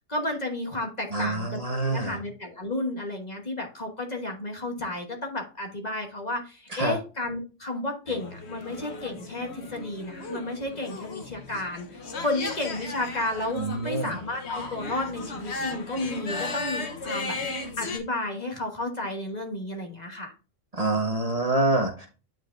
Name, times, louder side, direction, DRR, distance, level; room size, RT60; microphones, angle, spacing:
voice 1, 0.1-17.4 17.8-20.3, left 2 dB, 35° left, 2 dB, 1.4 m, -32 dB
voice 2, 1.1-2.2 6.7-7.0 13.6-14.2 20.7-22.1, right 2 dB, 30° right, 2 dB, 1.2 m, -26 dB
sound 1, 8.1-18.0, left 3 dB, 60° left, 1.4 m, -36 dB
9.4 x 4.7 x 2.5 m, 0.33 s
omnidirectional pair, 1.3 m